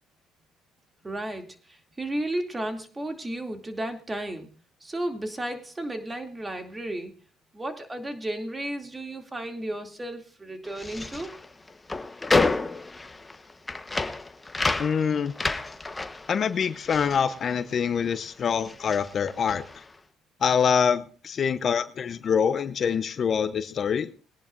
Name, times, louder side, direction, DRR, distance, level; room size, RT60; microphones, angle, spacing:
voice 1, 1.0-4.5 4.8-7.1 7.5-11.4, right 1 dB, 20° right, 5 dB, 2.5 m, -33 dB
sound 1, 10.6-18.2 18.4-19.9, left 3 dB, 15° left, 1.0 m, -30 dB
voice 2, 14.8-15.3 16.3-19.6 20.4-24.1, left 7 dB, 50° left, 12 dB, 0.7 m, -25 dB
22.0 x 10.5 x 2.5 m, 0.38 s
supercardioid pair, 80°, 0 cm